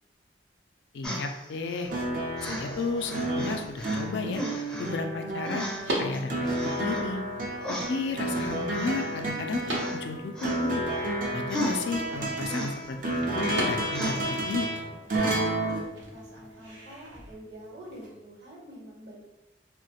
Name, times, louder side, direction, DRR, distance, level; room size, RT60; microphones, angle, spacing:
voice 1, 0.9-1.9 2.4-4.4 4.8-5.7 6.0-7.2 7.7-9.6 9.9-10.8 11.3-14.7, left 4 dB, 70° left, 5 dB, 0.3 m, -33 dB
sound 1, 1.0-2.0 2.4-4.1 4.3-4.9 5.4-6.0 6.4-7.1 7.6-9.4 9.7-10.0 10.3-11.0 11.5-13.2 13.9-14.5 15.1-15.2, equal, 5° left, 0.5 m, -37 dB
sound 2, 1.9-16.8 18.1-18.2, right 1 dB, 50° right, 0.5 m, -31 dB
sound 3, 2.0-17.3, right 1 dB, 90° right, 0.8 m, -41 dB
voice 2, 15.1-15.8 16.1-19.2, equal, 65° right, -4 dB, 1.0 m, -46 dB
3.0 x 2.1 x 2.8 m, 1.0 s
head